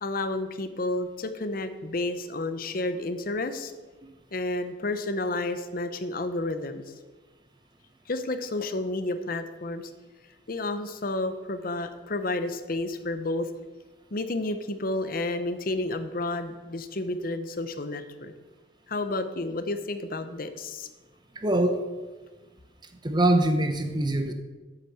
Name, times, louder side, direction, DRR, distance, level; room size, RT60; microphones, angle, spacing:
voice 1, 0.0-3.7 4.3-6.8 8.1-9.8 10.5-13.5 14.1-18.3 18.9-20.9, left 2 dB, 50° left, 9 dB, 0.8 m, -31 dB
voice 2, 21.3-21.8 23.0-24.3, right 1 dB, 25° right, 7 dB, 1.0 m, -23 dB
8.2 x 7.4 x 6.9 m, 1.3 s
head